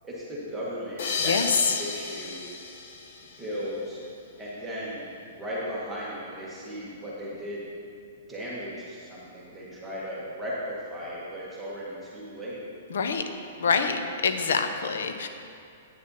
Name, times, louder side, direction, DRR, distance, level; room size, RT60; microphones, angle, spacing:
voice 1, 0.0-2.5 3.4-4.0 4.4-7.7 8.3-12.6, equal, 5° right, -8 dB, 1.4 m, -36 dB
sound 1, 1.0-4.1, left 4 dB, 55° left, 0.9 m, -34 dB
voice 2, 1.2-1.7 12.9-13.2 13.6-15.3, left 5 dB, 80° left, 7 dB, 0.7 m, -25 dB
9.3 x 6.6 x 4.1 m, 2.5 s
hypercardioid pair, 165°, 0 cm